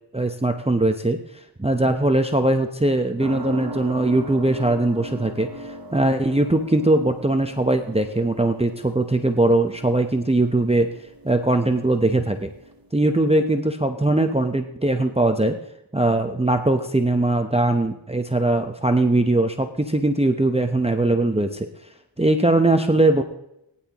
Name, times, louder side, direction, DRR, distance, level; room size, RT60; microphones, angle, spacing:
voice 1, 0.1-1.2 1.6-10.9 11.2-12.5 12.9-15.6 15.9-21.7 22.2-23.2, right 2 dB, 15° right, 6 dB, 0.8 m, -20 dB
sound 1, 3.2-12.9, right 1 dB, 45° right, 1.2 m, -39 dB
19.5 x 10.5 x 3.0 m, 0.83 s
wide cardioid pair, 40°, 47 cm